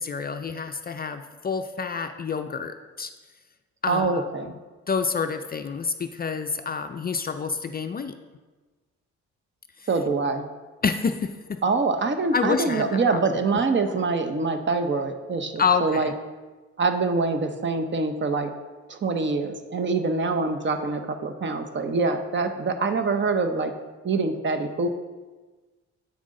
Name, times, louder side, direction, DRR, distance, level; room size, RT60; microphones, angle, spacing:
voice 1, 0.0-3.1 3.8-4.3 4.9-8.2 9.8-9.9 10.8-11.6 12.3-13.2 15.6-16.1, left 5 dB, 30° left, 7 dB, 0.4 m, -28 dB
voice 2, 3.9-4.6 9.9-10.5 11.6-16.1 16.8-18.5 18.9-23.7 24.0-24.9, right 3 dB, 40° right, 7 dB, 0.7 m, -25 dB
8.5 x 6.0 x 3.7 m, 1.3 s
cardioid pair, 90°, 30 cm